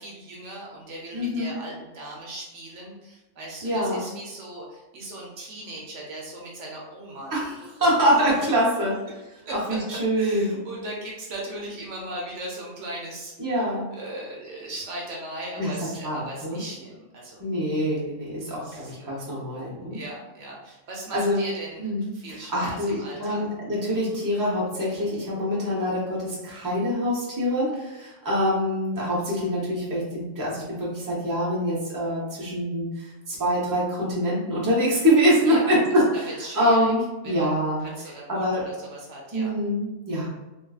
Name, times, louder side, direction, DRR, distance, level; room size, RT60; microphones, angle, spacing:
voice 1, 0.0-7.6 8.7-8.8 9.3-9.8 10.2-17.4 18.6-19.2 19.9-23.4 35.5-35.8 36.3-36.9 37.2-39.5, right 1 dB, 70° right, -3 dB, 0.9 m, -38 dB
voice 2, 1.1-1.5 3.6-4.1 7.3-7.5 7.8-9.0 9.7-10.6 13.4-13.9 15.6-15.7 16.0-16.6 17.4-20.0 21.1-21.4 21.8-22.1 22.5-22.9 23.2-36.0 36.5-37.9 38.3-38.6 39.3-40.3, equal, 20° right, -6 dB, 0.7 m, -24 dB
3.1 x 2.6 x 2.3 m, 1.1 s
omnidirectional pair, 1.3 m